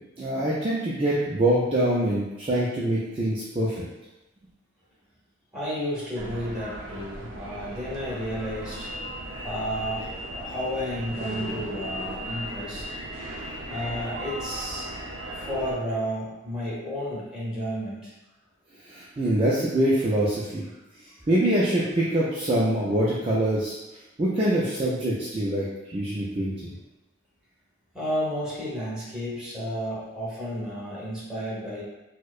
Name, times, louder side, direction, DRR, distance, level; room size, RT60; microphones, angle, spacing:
voice 1, 0.2-3.9 18.9-20.6 21.3-23.7 24.2-26.7, right 1 dB, 25° right, -7 dB, 0.4 m, -24 dB
voice 2, 5.5-8.9 9.4-12.9 13.7-14.9 15.3-18.1 23.3-23.4 27.9-31.8, equal, 5° right, -8 dB, 1.1 m, -32 dB
sound 1, 6.2-15.8, right 1 dB, 85° right, 0.6 m, -36 dB
4.4 x 2.1 x 2.4 m, 1.0 s
head